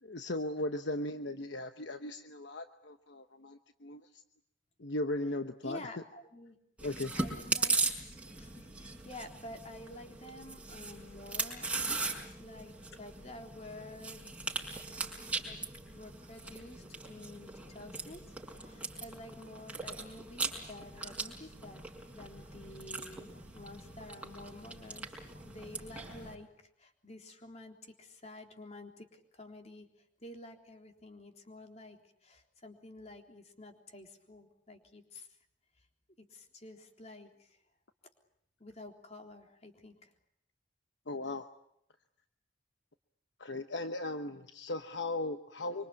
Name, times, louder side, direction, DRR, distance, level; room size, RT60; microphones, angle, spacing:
voice 1, 0.0-4.1 4.8-5.8 6.8-7.1 41.1-41.5 43.4-45.9, left 2 dB, 65° left, 7 dB, 1.1 m, -37 dB
voice 2, 5.6-6.6 7.1-7.8 8.1-11.7 12.4-14.4 15.4-15.7 15.9-21.8 22.1-26.5 26.8-29.9 30.2-35.3 36.2-37.6 38.6-40.1, left 2 dB, 35° left, 3 dB, 3.6 m, -50 dB
Chewing mastication, 6.8-26.3, right 3 dB, 5° right, 5.4 m, -39 dB
25.5 x 25.0 x 8.5 m, 0.71 s
head